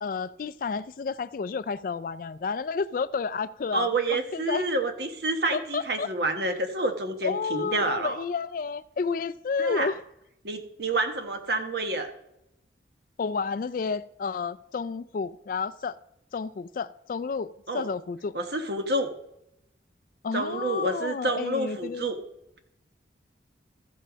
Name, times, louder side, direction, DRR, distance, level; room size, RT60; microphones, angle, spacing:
voice 1, 0.0-4.6 5.7-6.1 7.2-10.0 13.2-16.0 16.3-18.3 20.2-22.1, left 5 dB, 50° left, 0.3 m, -31 dB
voice 2, 3.7-8.2 9.6-9.9 10.4-12.1 17.7-17.9 18.3-19.1 20.3-22.2, right 2 dB, 60° right, 1.2 m, -28 dB
14.5 x 5.5 x 5.0 m
head